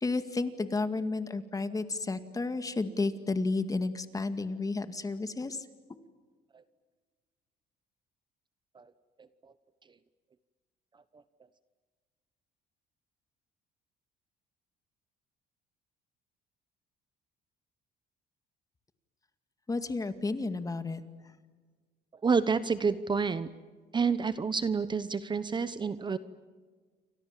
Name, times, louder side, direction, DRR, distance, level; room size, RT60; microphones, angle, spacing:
voice 1, 0.0-5.7 19.7-21.0, left 3 dB, 20° left, 10 dB, 2.1 m, -32 dB
voice 2, 22.2-23.5 23.9-26.2, right 5 dB, 25° right, 14 dB, 1.0 m, -29 dB
29.0 x 25.0 x 7.5 m, 1.5 s
cardioid pair, 110°, 17 cm